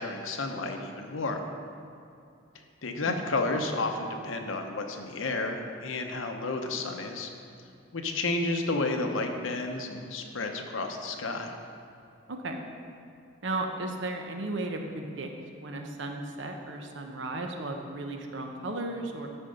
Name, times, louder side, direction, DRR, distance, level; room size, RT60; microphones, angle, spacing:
voice 1, 0.0-1.4 2.8-7.3 7.9-11.5, left 2 dB, 80° left, 4 dB, 0.9 m, -31 dB
voice 2, 12.3-12.6 13.4-15.3 15.6-19.3, right 2 dB, 65° right, 3 dB, 0.9 m, -35 dB
13.5 x 4.4 x 5.1 m, 2.6 s
head